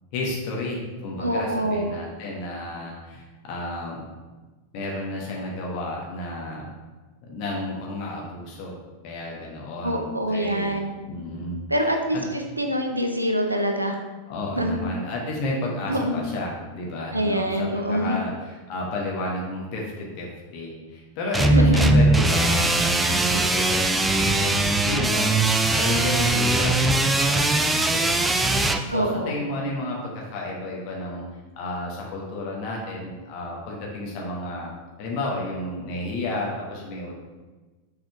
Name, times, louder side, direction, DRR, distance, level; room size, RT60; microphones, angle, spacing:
voice 1, 0.1-4.2 4.7-6.7 7.2-8.8 9.0-10.1 10.3-10.7 11.1-11.6 12.1-12.3 14.3-18.3 18.7-20.3 20.5-28.6 28.8-31.2 31.6-37.1, left 2 dB, 45° left, -2 dB, 1.2 m, -32 dB
voice 2, 1.2-1.9 9.8-10.9 11.7-14.0 14.5-14.8 15.9-16.2 17.1-18.2 21.5-21.9 28.9-29.4, equal, 85° right, 4 dB, 0.8 m, -25 dB
sound 1, 21.3-28.8, right 2 dB, 10° right, 0.4 m, -20 dB
6.5 x 4.2 x 4.6 m, 1.3 s
figure-of-eight pair, 90°, 0 cm